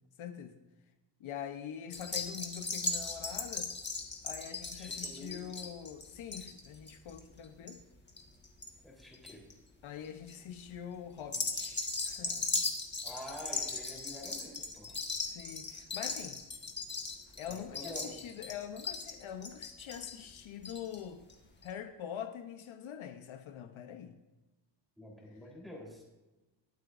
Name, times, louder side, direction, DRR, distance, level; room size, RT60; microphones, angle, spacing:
voice 1, 0.2-0.6 1.2-3.7 4.2-7.8 9.8-12.6 15.3-16.4 17.4-21.2 21.6-24.2, left 9 dB, 80° left, 1.0 m, -44 dB
sound 1, 1.9-8.7 9.0-9.5 10.0-10.4 11.2-21.0 21.3-21.4 21.6-21.7, left 3 dB, 20° left, 1.5 m, -38 dB
voice 2, 4.8-5.4 8.8-9.4 13.0-15.0 17.5-18.2 25.0-26.0, equal, ahead, 3.8 m, -47 dB
22.0 x 7.9 x 2.6 m
wide cardioid pair, 145°, 47 cm